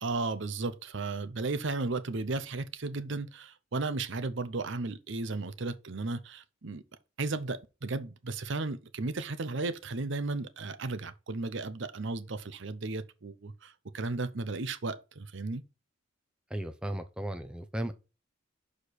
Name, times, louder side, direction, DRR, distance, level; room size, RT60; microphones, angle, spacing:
voice 1, 0.0-6.8 7.2-15.6, right 3 dB, 60° right, 0.7 m, -34 dB
voice 2, 16.5-17.9, right 1 dB, 5° right, 0.6 m, -35 dB
6.5 x 5.0 x 4.1 m
head